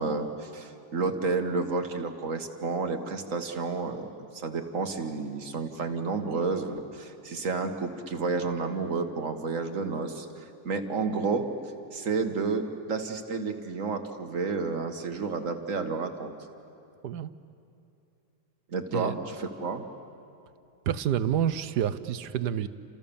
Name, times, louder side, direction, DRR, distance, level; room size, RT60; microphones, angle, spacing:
voice 1, 0.0-4.1 4.3-11.5 11.9-16.3 18.7-19.8, right 4 dB, 55° right, 5 dB, 2.0 m, -31 dB
voice 2, 20.9-22.7, right 9 dB, 90° right, 13 dB, 1.4 m, -28 dB
29.5 x 27.0 x 7.1 m, 2.6 s
omnidirectional pair, 1.7 m